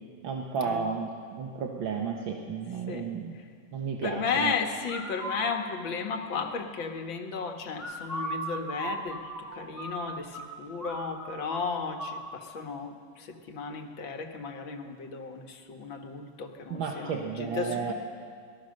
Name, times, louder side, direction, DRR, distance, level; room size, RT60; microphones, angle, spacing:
voice 1, 0.2-3.3 3.7-4.5 16.7-17.9, right 6 dB, 80° right, 1 dB, 2.1 m, -32 dB
voice 2, 4.0-9.2 9.5-17.9, left 5 dB, 75° left, 4 dB, 2.5 m, -34 dB
sound 1, 4.9-5.5 7.7-10.5 10.8-10.9 11.2-12.2, right 1 dB, 10° right, 5.0 m, -36 dB
27.0 x 19.0 x 6.6 m, 2.1 s
omnidirectional pair, 2.1 m